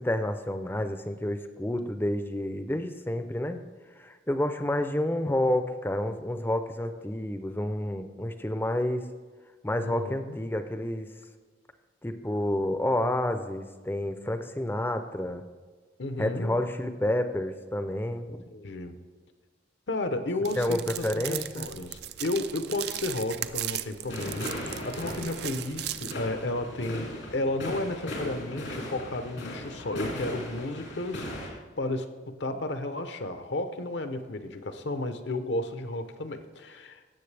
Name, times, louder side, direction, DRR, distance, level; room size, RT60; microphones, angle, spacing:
voice 1, 0.0-3.6 4.0-9.1 9.6-11.1 12.0-15.4 16.2-18.4 20.6-21.7, left 1 dB, 10° left, 8 dB, 0.5 m, -29 dB
voice 2, 9.8-10.4 16.0-16.6 18.5-19.0 19.9-37.0, left 2 dB, 70° left, 8 dB, 0.7 m, -33 dB
sound 1, 20.4-26.1, right 12 dB, 60° right, 0.4 m, -37 dB
sound 2, 24.1-31.5, equal, 90° left, 2.6 m, -38 dB
17.0 x 7.3 x 3.3 m, 1.4 s
head